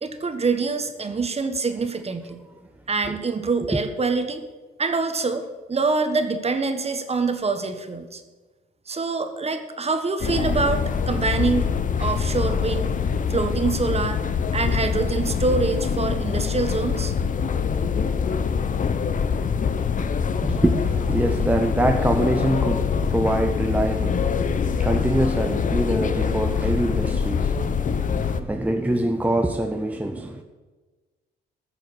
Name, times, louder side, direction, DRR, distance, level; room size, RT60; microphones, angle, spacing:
voice 1, 0.0-2.4 2.9-4.4 4.8-8.2 8.9-11.7 12.0-12.9 13.3-14.2 14.5-17.1, right 4 dB, 30° right, 1.4 m, -25 dB
sound 1, 10.2-28.4, left 6 dB, 40° left, 0.8 m, -24 dB
voice 2, 20.4-30.4, right 1 dB, 5° right, 0.8 m, -24 dB
14.5 x 6.8 x 6.2 m
cardioid pair, 90°, 20 cm